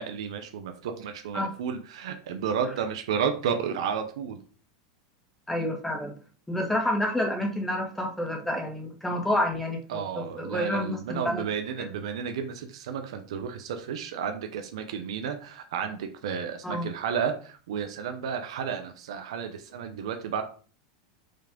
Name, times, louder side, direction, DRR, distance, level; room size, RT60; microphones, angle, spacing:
voice 1, 0.0-4.4 9.9-20.4, right 7 dB, 80° right, 6 dB, 0.9 m, -32 dB
voice 2, 5.5-6.1 6.5-11.4 16.6-16.9, left 1 dB, 5° left, 1 dB, 1.9 m, -29 dB
5.6 x 3.3 x 5.3 m, 0.40 s
supercardioid pair, 130°, 3 cm